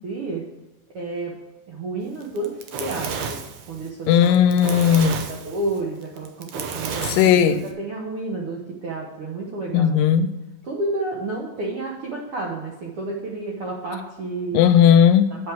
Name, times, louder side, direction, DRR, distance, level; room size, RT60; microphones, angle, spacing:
voice 1, 0.0-0.4 0.9-1.3 1.7-3.4 3.7-4.6 5.0-10.2 10.6-14.6 15.3-15.5, right 2 dB, 65° right, 1.4 m, -31 dB
Fire, 2.2-7.7, right 6 dB, 90° right, 1.4 m, -32 dB
voice 2, 4.1-5.3 7.0-7.6 9.7-10.3 14.5-15.3, left 9 dB, 80° left, 2.2 m, -16 dB
8.3 x 6.5 x 6.1 m
omnidirectional pair, 4.1 m